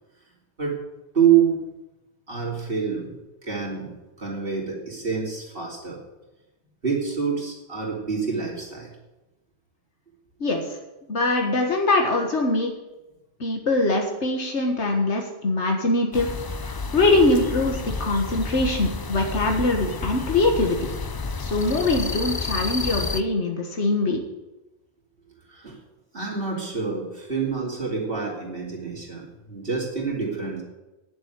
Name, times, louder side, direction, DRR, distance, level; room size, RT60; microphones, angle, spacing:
voice 1, 1.1-1.6 2.3-3.9 4.2-6.0 6.8-8.9 25.5-25.8 26.1-30.6, right 7 dB, 55° right, -2 dB, 3.4 m, -26 dB
voice 2, 11.1-12.7 13.4-16.3 16.6-20.8 21.4-24.2, left 2 dB, 90° left, 2 dB, 1.9 m, -22 dB
sound 1, 16.1-23.2, left 4 dB, 35° left, 0.4 m, -30 dB
9.9 x 7.8 x 9.6 m, 1.0 s
omnidirectional pair, 1.1 m